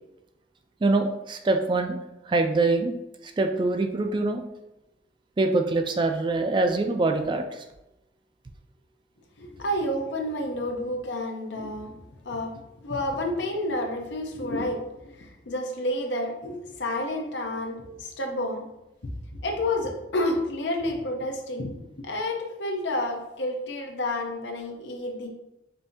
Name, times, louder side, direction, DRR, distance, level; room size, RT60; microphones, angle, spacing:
voice 1, 0.8-2.0 2.3-2.9 3.4-4.4 5.4-7.6 17.9-18.0, right 3 dB, 25° right, 5 dB, 0.3 m, -24 dB
voice 2, 9.4-11.9 12.2-12.5 12.8-18.7 19.4-25.3, left 1 dB, 85° left, 2 dB, 0.7 m, -30 dB
5.3 x 2.6 x 2.7 m, 0.91 s
head